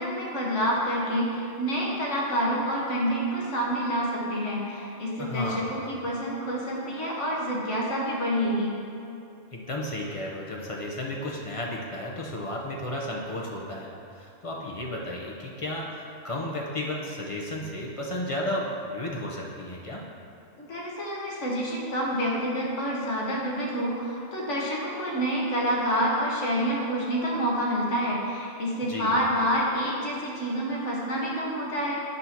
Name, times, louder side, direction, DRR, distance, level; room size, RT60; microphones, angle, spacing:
voice 1, 0.0-8.8 20.6-32.0, equal, 70° left, -4 dB, 1.5 m, -28 dB
voice 2, 5.2-5.7 9.5-20.0 28.9-29.2, left 1 dB, 35° left, -2 dB, 0.6 m, -33 dB
8.1 x 2.7 x 5.8 m, 2.5 s
omnidirectional pair, 1.3 m